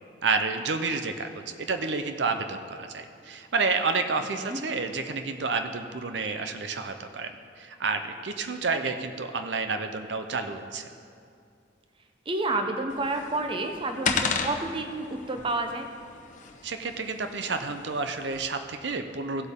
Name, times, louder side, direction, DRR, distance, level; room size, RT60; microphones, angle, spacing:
voice 1, 0.2-10.9 16.6-19.5, right 4 dB, 70° right, 7 dB, 0.6 m, -30 dB
voice 2, 12.3-15.9, right 2 dB, 30° right, 6 dB, 0.7 m, -30 dB
sound 1, 12.9-18.4, left 5 dB, 45° left, 0.7 m, -34 dB
16.0 x 8.0 x 3.7 m, 2.4 s
head